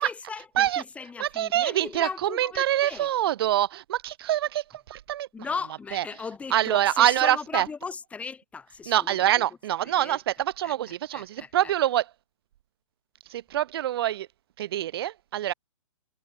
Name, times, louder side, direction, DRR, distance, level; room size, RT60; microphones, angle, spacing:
voice 1, 0.0-3.1 5.3-9.2 9.8-10.2 10.6-11.7, left 5 dB, 5° left, 7.1 m, -37 dB
voice 2, 1.2-5.3 5.9-6.0 6.5-7.7 8.9-12.1 13.3-14.3 14.6-15.5, right 12 dB, 45° right, 4.2 m, -25 dB
hypercardioid pair, 155°, 17 cm